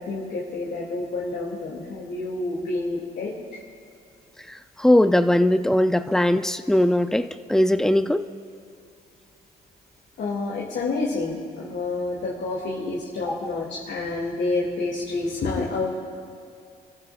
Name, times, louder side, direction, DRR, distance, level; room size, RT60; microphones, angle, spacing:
voice 1, 0.0-3.3 10.2-15.9, left 3 dB, 65° left, -5 dB, 2.7 m, -28 dB
voice 2, 4.8-8.2 13.3-13.4, left 1 dB, ahead, 10 dB, 0.6 m, -20 dB
29.5 x 14.0 x 2.6 m, 2.5 s
cardioid pair, 90°, 20 cm